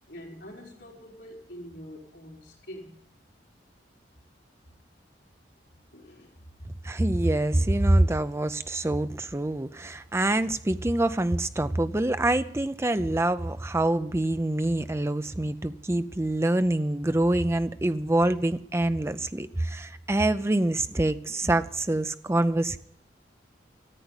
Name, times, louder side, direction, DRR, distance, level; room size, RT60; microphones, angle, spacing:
voice 1, 0.1-3.0 5.9-6.4, equal, 70° left, 3.6 m, -45 dB
voice 2, 6.8-22.8, right 1 dB, 15° right, 0.5 m, -25 dB
14.5 x 8.5 x 9.7 m
head